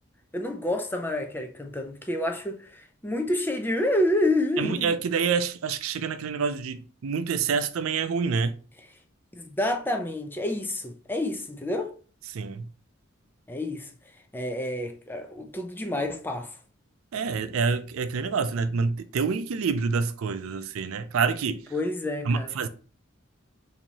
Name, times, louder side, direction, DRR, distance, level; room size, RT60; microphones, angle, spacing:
voice 1, 0.3-4.9 9.3-11.9 13.5-13.9 14.3-16.6 21.7-22.6, left 1 dB, 10° left, 0.4 m, -28 dB
voice 2, 4.6-8.5 12.3-12.7 17.1-21.6 22.2-22.7, right 5 dB, 85° right, 0.4 m, -27 dB
4.5 x 2.7 x 2.8 m
head